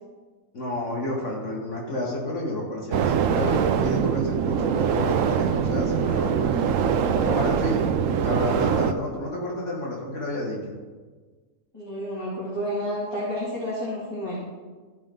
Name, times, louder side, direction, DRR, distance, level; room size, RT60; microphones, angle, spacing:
voice 1, 0.5-6.8 7.2-7.8 8.2-10.7, left 1 dB, 50° left, -3 dB, 1.8 m, -30 dB
sound 1, 2.9-8.9, right 7 dB, 70° right, 0.9 m, -23 dB
voice 2, 11.7-14.3, equal, 15° left, -10 dB, 2.5 m, -30 dB
14.5 x 5.4 x 3.8 m, 1.4 s
omnidirectional pair, 1.6 m